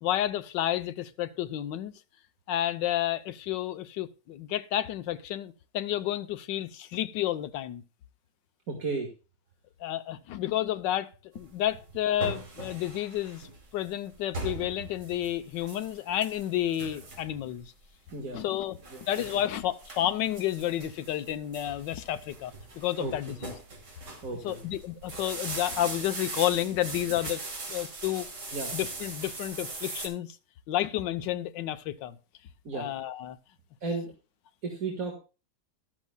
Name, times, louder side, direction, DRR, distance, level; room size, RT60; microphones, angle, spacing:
voice 1, 0.0-1.9 2.5-7.8 9.8-11.1 11.3-17.7 18.3-23.5 24.4-27.4 27.7-28.3 28.7-30.4 30.7-32.2 32.7-33.4, left 12 dB, 90° left, 1.4 m, -31 dB
voice 2, 8.7-9.1 18.1-18.4 18.9-19.0 23.0-23.3 24.2-24.6 28.5-28.7 32.6-32.9 33.8-34.1 34.6-35.2, right 3 dB, 55° right, 2.0 m, -34 dB
sound 1, 11.4-30.1, right 3 dB, 75° right, 3.2 m, -40 dB
13.5 x 12.0 x 2.2 m
omnidirectional pair, 1.9 m